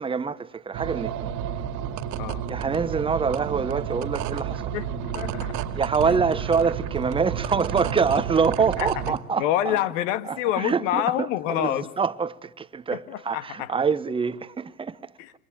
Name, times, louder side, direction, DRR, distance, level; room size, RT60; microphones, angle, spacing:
voice 1, 0.0-1.3 2.5-4.7 5.8-9.8 10.3-15.1, right 5 dB, 10° right, 1.0 m, -26 dB
sound 1, 0.7-9.2, right 8 dB, 40° right, 2.2 m, -31 dB
voice 2, 4.7-5.7 8.8-8.9 9.4-11.9 12.9-13.7 15.2-15.3, left 13 dB, 55° left, 1.8 m, -27 dB
27.0 x 23.5 x 8.8 m
hypercardioid pair, 100°, 44 cm